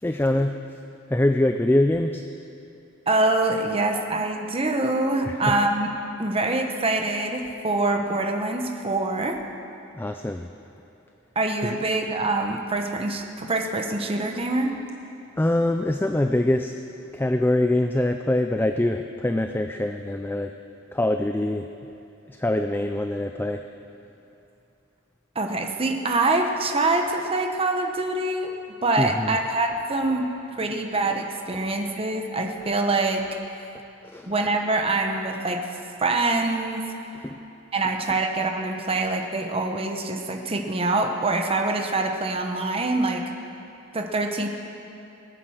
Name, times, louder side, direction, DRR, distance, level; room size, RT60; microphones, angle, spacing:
voice 1, 0.0-0.5 1.1-2.2 5.3-5.5 9.9-10.5 11.6-11.8 15.4-16.7 17.1-20.5 20.9-21.7 22.4-23.6 29.0-29.4 34.1-34.3 37.2-37.4, left 1 dB, 10° left, 6 dB, 0.3 m, -24 dB
voice 2, 3.1-5.9 6.2-9.4 11.3-14.7 25.3-28.6 28.8-33.3 34.3-35.7 36.0-36.9 37.7-43.2 43.9-44.5, right 2 dB, 25° right, 3 dB, 1.0 m, -25 dB
20.0 x 9.1 x 6.4 m, 2.7 s
head